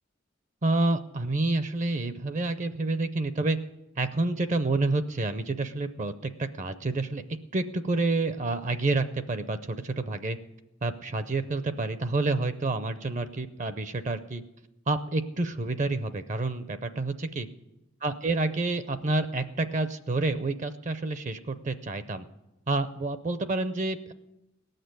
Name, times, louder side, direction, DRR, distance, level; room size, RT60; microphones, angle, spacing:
voice 1, 0.6-3.6 4.0-7.2 7.5-10.4 10.8-14.4 14.9-17.5 18.0-22.2 22.7-24.1, right 2 dB, 35° right, 11 dB, 0.5 m, -28 dB
18.0 x 6.6 x 9.3 m, 0.95 s
head